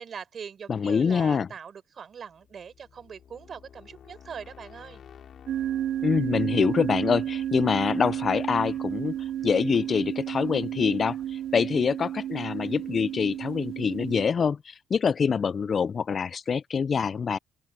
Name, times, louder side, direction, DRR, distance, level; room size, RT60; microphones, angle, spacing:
voice 1, 0.0-5.0, right 7 dB, 50° right, 5.7 m, -42 dB
voice 2, 0.7-1.5 6.0-9.2 9.4-11.2 11.5-17.4, left 6 dB, 45° left, 0.3 m, -25 dB
sound 1, 2.2-11.1, left 8 dB, 60° left, 5.2 m, -53 dB
sound 2, 5.5-14.3, right 11 dB, 80° right, 2.1 m, -31 dB
open air
cardioid pair, 100°, 0 cm